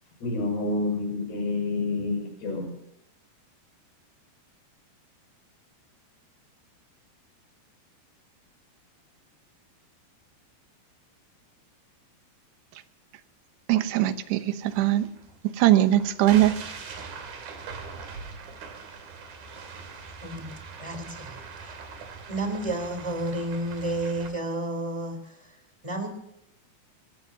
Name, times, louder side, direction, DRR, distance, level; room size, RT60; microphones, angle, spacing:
voice 1, 0.2-2.7, left 2 dB, 75° left, 8.4 m, -28 dB
voice 2, 13.7-15.1 15.5-16.6, right 13 dB, 80° right, 3.1 m, -21 dB
sound 1, 14.6-24.3, right 5 dB, 65° right, 4.3 m, -42 dB
voice 3, 20.2-21.8 22.3-25.6 25.8-26.1, right 1 dB, 10° right, 3.2 m, -32 dB
25.0 x 18.0 x 2.8 m
omnidirectional pair, 4.8 m